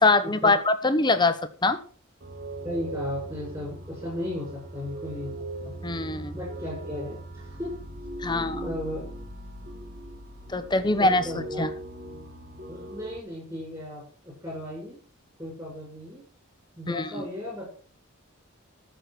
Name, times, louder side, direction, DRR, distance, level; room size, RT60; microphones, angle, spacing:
voice 1, 0.0-1.8 5.8-6.3 8.2-8.6 10.5-11.2 11.6-11.7 17.0-17.1, left 3 dB, 20° left, 10 dB, 1.1 m, -23 dB
sound 1, 2.2-13.2, right 1 dB, 45° right, 2.2 m, -39 dB
voice 2, 2.6-5.3 5.6-5.7 6.3-7.8 8.2-9.1 9.7-9.8 11.0-11.7 12.7-15.0 15.4-16.2 16.8-17.7, left 1 dB, 15° right, -3 dB, 6.2 m, -36 dB
14.0 x 6.8 x 6.2 m, 0.40 s
head